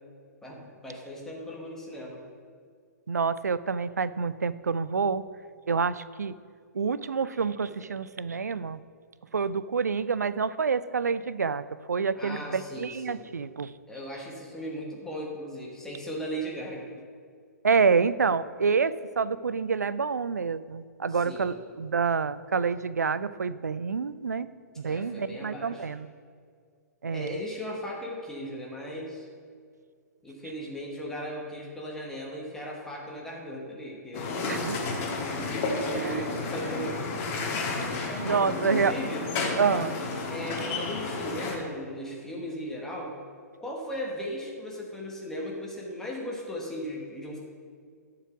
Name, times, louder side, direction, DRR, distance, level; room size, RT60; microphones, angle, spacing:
voice 1, 0.4-2.2 7.3-7.4 12.1-13.2 13.9-16.9 21.1-21.6 24.8-25.9 27.1-29.3 30.2-34.3 35.3-37.2 38.2-39.3 39.7-39.9 40.3-43.1 43.6-47.4, equal, 5° left, -3 dB, 1.3 m, -37 dB
voice 2, 3.1-5.2 5.7-6.3 6.7-8.8 9.3-13.7 17.6-24.5 24.8-26.1 27.0-27.4 34.5-34.8 36.0-36.3 37.8-37.9 38.2-38.9 39.6-39.9, right 5 dB, 70° right, 16 dB, 0.4 m, -27 dB
sound 1, 34.1-41.6, left 3 dB, 30° left, 1.5 m, -31 dB
10.5 x 4.8 x 5.9 m, 2.2 s
figure-of-eight pair, 115°, 9 cm